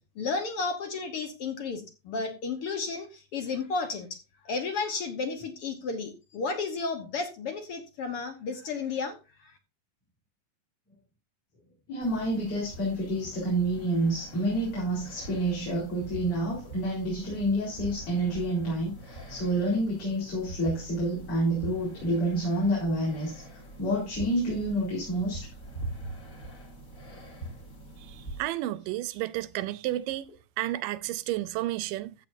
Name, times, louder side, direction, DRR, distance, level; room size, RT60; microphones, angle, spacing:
voice 1, 0.1-4.2 4.4-9.5, left 4 dB, 60° left, 1.6 m, -33 dB
voice 2, 11.9-23.4 23.8-25.5, right 1 dB, 40° left, 5.0 m, -28 dB
sound 1, 12.0-28.4, right 1 dB, 25° left, 2.8 m, -43 dB
voice 3, 28.1-32.1, right 15 dB, 80° right, 2.2 m, -32 dB
14.0 x 8.3 x 2.6 m
omnidirectional pair, 3.9 m